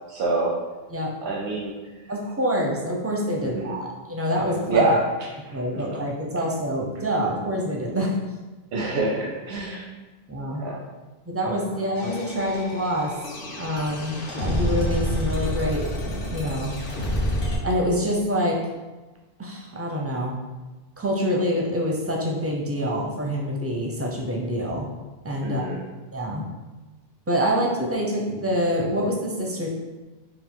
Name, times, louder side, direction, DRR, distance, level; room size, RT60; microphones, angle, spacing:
voice 1, 0.1-0.5 1.2-1.7 3.4-3.7 4.7-5.0 5.7-5.8 8.7-9.9 10.6-10.8 25.4-25.8, right 2 dB, 85° right, -2 dB, 0.9 m, -25 dB
voice 2, 2.1-4.8 5.5-8.1 10.3-10.7 11.3-13.2 13.6-16.8 17.6-18.6 19.4-20.3 21.0-24.9 25.2-25.7 26.1-26.4 27.3-29.7, equal, 20° right, -1 dB, 0.4 m, -26 dB
sound 1, 12.0-17.6, equal, 60° left, 0.9 m, -28 dB
4.4 x 2.4 x 3.7 m, 1.2 s
omnidirectional pair, 1.0 m